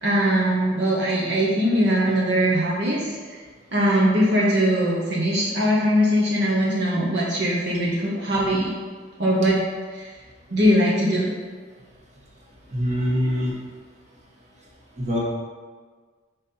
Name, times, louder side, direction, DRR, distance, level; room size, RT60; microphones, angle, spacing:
voice 1, 0.0-3.2 3.7-8.7 9.2-9.6 9.9-10.1 10.5-11.3, equal, 60° right, -5 dB, 1.0 m, -21 dB
voice 2, 12.7-13.5 15.0-15.2, equal, 35° right, -4 dB, 1.4 m, -23 dB
5.5 x 5.2 x 4.3 m, 1.5 s
head